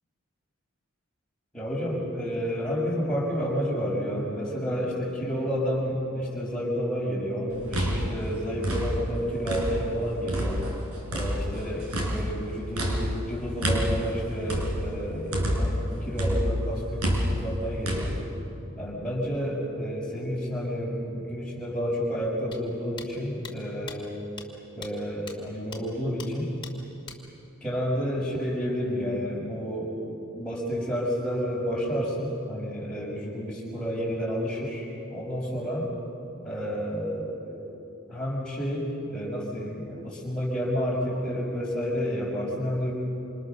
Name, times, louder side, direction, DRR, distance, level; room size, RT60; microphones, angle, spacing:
voice 1, 1.5-10.6 11.1-18.2 18.8-24.3 24.7-26.5 27.6-35.9 36.4-37.8 38.1-42.9, equal, 5° left, -5 dB, 6.2 m, -30 dB
sound 1, 7.5-10.0 10.3-15.9 16.2-18.1, equal, 85° right, 5.6 m, -28 dB
sound 2, 22.5-22.6 23.0-23.1 23.4-23.5 23.9-24.0 24.4-24.5 24.8-24.9 25.3-25.4 25.7-25.8 26.2-26.3 26.6-26.7 27.1-27.2, left 5 dB, 20° left, 2.9 m, -40 dB
28.0 x 27.5 x 6.9 m, 3.0 s
head